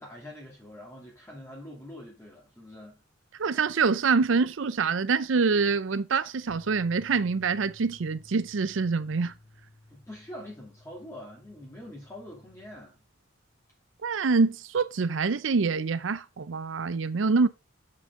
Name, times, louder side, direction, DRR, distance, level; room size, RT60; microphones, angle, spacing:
voice 1, 0.0-3.0 9.9-13.0, left 1 dB, 15° left, 2.6 m, -44 dB
voice 2, 3.4-9.3 14.0-17.5, right 4 dB, 70° right, 0.5 m, -25 dB
sound 1, 6.5-12.7, left 2 dB, 30° left, 3.6 m, -55 dB
7.7 x 7.5 x 3.7 m
head